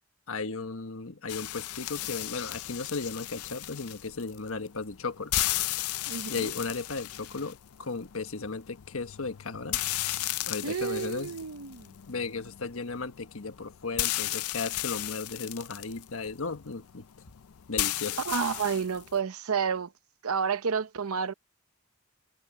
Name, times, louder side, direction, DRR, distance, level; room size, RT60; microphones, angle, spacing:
voice 1, 0.3-5.3 6.3-9.8 10.5-11.3 12.1-17.0 17.7-18.2, left 4 dB, 75° left, 1.3 m, -35 dB
sound 1, 1.3-19.2, left 15 dB, 90° left, 0.5 m, -35 dB
voice 2, 6.1-6.5 10.6-11.9 18.2-19.9 20.2-21.3, right 6 dB, 80° right, 0.7 m, -30 dB
head